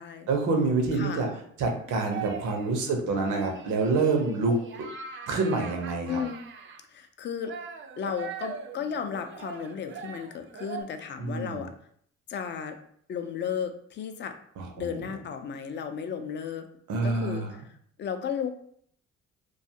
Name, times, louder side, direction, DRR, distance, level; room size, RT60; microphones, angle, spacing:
voice 1, 0.3-1.3 1.6-4.6 5.3-6.2 11.2-11.6 14.6-15.0 16.9-17.5, right 3 dB, 80° right, 3 dB, 0.7 m, -27 dB
voice 2, 1.0-1.3 2.9-3.2 6.1-6.4 6.9-7.5 8.0-11.7 12.3-12.8 13.1-14.4 14.8-16.7 17.0-17.6 18.0-18.6, left 7 dB, 40° left, 7 dB, 0.4 m, -34 dB
sound 1, 2.1-2.8 3.2-6.8 7.4-10.8, right 6 dB, 40° right, 0.4 m, -41 dB
2.5 x 2.3 x 2.7 m, 0.64 s
cardioid pair, 90°, 30 cm